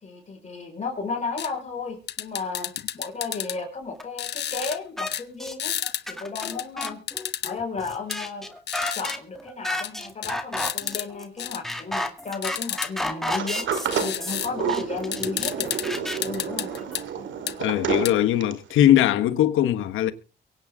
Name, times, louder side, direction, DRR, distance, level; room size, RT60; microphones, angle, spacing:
voice 1, 0.0-5.8 6.1-7.0 7.4-8.5 8.9-13.7 13.9-15.7 16.2-16.7, left 4 dB, 35° left, 5.0 m, -34 dB
sound 1, 1.4-1.5 2.1-3.6 4.2-4.8 5.1-5.2 5.6-6.0 6.4-7.5 8.1-8.2 8.7-9.1 9.8-9.9 10.2-11.1 11.4-11.6 12.4-12.9 13.9-14.5 14.8-14.9 15.1-15.9 16.2-17.0 17.5-17.6 18.1-18.2, left 10 dB, 60° left, 1.0 m, -31 dB
sound 2, 4.0-4.1 4.6-5.1 5.4-5.5 5.8-17.0, left 1 dB, ahead, 2.0 m, -32 dB
Sliding door, 13.3-18.7, right 7 dB, 70° right, 2.3 m, -30 dB
voice 2, 17.6-20.1, left 12 dB, 85° left, 1.3 m, -20 dB
23.5 x 8.8 x 3.7 m
cardioid pair, 90°, 20 cm